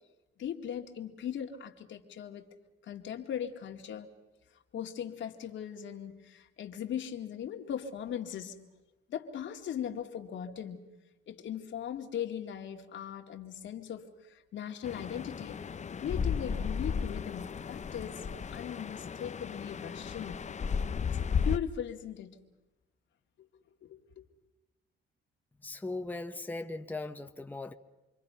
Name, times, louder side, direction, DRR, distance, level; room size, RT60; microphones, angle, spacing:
voice 1, 0.4-2.5 2.8-4.1 4.7-8.6 9.1-10.9 11.3-15.6 16.0-20.5 21.4-22.4 23.4-23.5 23.8-24.2, left 9 dB, 70° left, 2.2 m, -39 dB
sound 1, 14.8-21.6, left 6 dB, 35° left, 0.8 m, -34 dB
voice 2, 25.6-27.7, left 2 dB, 10° left, 1.2 m, -38 dB
28.5 x 23.0 x 5.7 m
cardioid pair, 90°, 20 cm